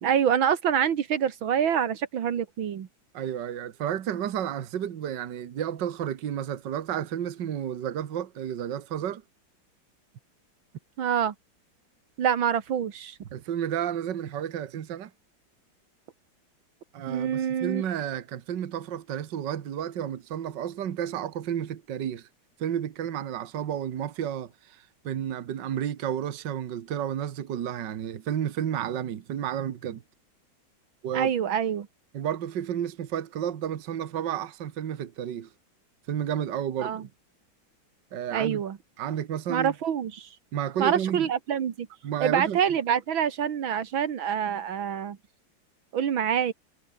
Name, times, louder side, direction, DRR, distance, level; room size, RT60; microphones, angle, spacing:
voice 1, 0.0-2.9 11.0-11.3 12.2-13.2 17.1-17.8 31.1-31.9 36.8-37.1 38.3-38.8 39.5-40.3 40.8-41.9 42.2-45.2 45.9-46.5, right 8 dB, 80° right, 2.3 m, -26 dB
voice 2, 3.1-9.2 13.3-15.1 16.9-22.3 22.6-30.0 31.0-31.3 32.1-35.5 36.1-37.1 38.1-38.6 39.0-39.7 40.5-41.3 42.0-42.6, right 9 dB, 65° right, 1.9 m, -31 dB
omnidirectional pair, 2.1 m